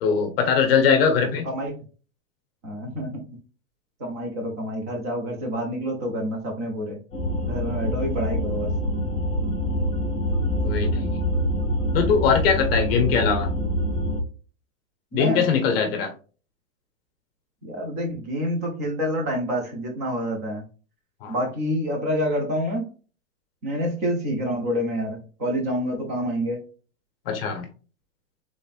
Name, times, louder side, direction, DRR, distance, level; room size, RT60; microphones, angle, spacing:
voice 1, 0.0-1.5 10.6-11.2 11.9-13.5 15.1-16.1 21.2-21.4 27.3-27.7, left 6 dB, 45° left, 6 dB, 0.8 m, -21 dB
voice 2, 2.6-3.2 4.0-7.0 7.5-8.7 15.1-15.5 17.6-20.6 21.3-22.8 23.6-26.6, equal, 15° right, 2 dB, 0.3 m, -27 dB
sound 1, 7.1-14.2, equal, 15° left, 1.1 m, -25 dB
3.9 x 3.5 x 2.4 m, 0.36 s
supercardioid pair, 160°, 41 cm